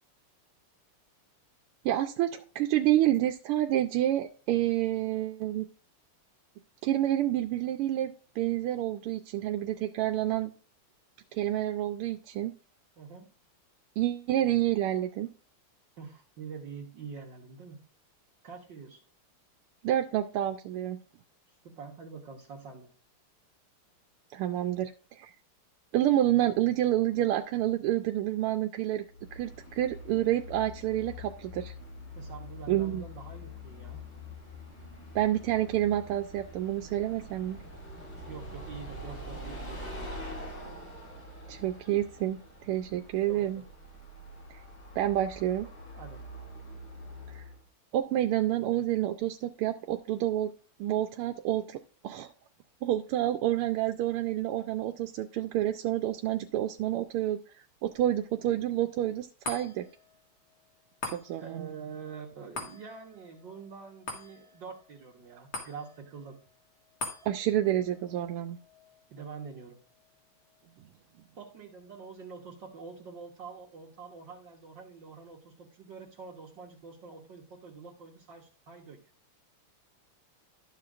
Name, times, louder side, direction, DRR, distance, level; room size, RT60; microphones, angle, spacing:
voice 1, 1.8-5.7 6.8-10.5 11.3-12.5 14.0-15.3 19.8-21.0 24.3-25.3 25.9-29.0 29.3-31.7 32.7-33.0 35.1-37.6 41.5-43.6 44.9-45.7 47.3-47.5 47.9-50.5 50.8-51.8 52.0-52.3 52.8-59.9 61.1-61.7 67.2-68.6, right 13 dB, 85° right, 6 dB, 1.5 m, -29 dB
voice 2, 13.0-13.3 16.0-17.8 18.4-19.0 21.6-22.9 32.2-34.0 38.3-40.4 43.3-43.6 45.9-46.2 61.4-66.4 69.1-69.8 71.4-79.0, right 5 dB, 60° right, 0 dB, 1.8 m, -45 dB
Bus, 29.1-47.6, left 1 dB, 35° left, 5.7 m, -45 dB
sound 1, 59.4-72.0 72.5-72.6, left 2 dB, 70° left, 2.7 m, -45 dB
12.5 x 7.7 x 2.5 m, 0.37 s
omnidirectional pair, 2.4 m